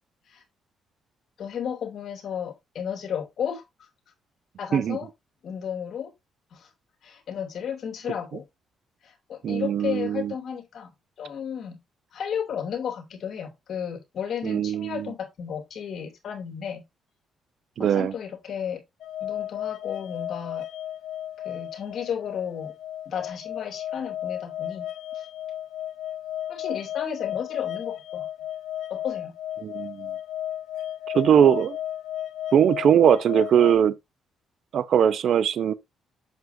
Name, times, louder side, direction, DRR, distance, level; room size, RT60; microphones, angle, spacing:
voice 1, 1.4-3.9 4.6-5.1 5.4-6.1 6.5-6.7 7.0-8.4 9.0-11.8 12.1-16.8 17.8-18.8 19.2-20.7 21.4-22.7 23.1-24.9 25.1-25.3 26.5-28.3 28.9-29.3, left 8 dB, 60° left, 2.6 m, -33 dB
voice 2, 9.4-10.3 14.4-15.1 17.8-18.1 29.6-30.1 31.1-31.8 32.5-33.9 34.7-35.7, right 9 dB, 65° right, 0.6 m, -20 dB
sound 1, 19.0-33.8, left 11 dB, 80° left, 0.9 m, -34 dB
8.1 x 6.7 x 2.7 m
cardioid pair, 90°, 0 cm